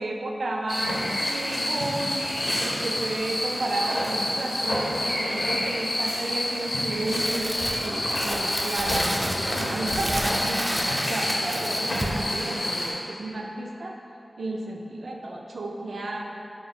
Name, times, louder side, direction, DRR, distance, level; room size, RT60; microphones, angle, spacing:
voice 1, 0.0-14.0 14.4-16.2, right 2 dB, 85° right, 1 dB, 0.3 m, -32 dB
sound 1, 0.7-12.9, left 1 dB, 75° left, 0.7 m, -28 dB
Crumpling crinkling, 7.1-12.3, equal, 10° right, 0.3 m, -31 dB
4.3 x 2.3 x 4.2 m, 2.8 s
wide cardioid pair, 65°, 0 cm